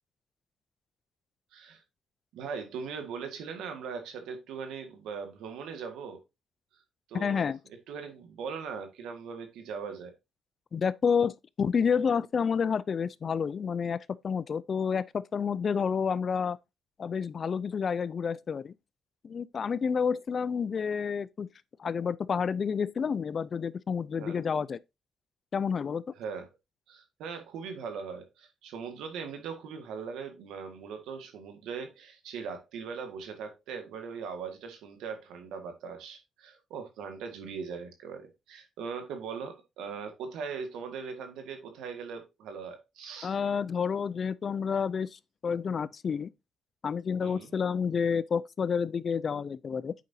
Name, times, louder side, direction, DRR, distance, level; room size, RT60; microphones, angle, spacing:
voice 1, 1.5-1.8 2.3-6.2 7.1-7.5 7.9-10.1 24.2-24.4 26.2-26.5 26.9-43.3 47.2-47.5, right 6 dB, 85° right, 1.7 m, -40 dB
voice 2, 7.1-7.6 10.7-16.6 17.0-18.7 19.2-21.5 21.8-24.8 25.5-26.0 43.2-46.3 46.8-49.9, left 6 dB, 45° left, 0.4 m, -29 dB
8.4 x 5.2 x 2.7 m
cardioid pair, 90°, 0 cm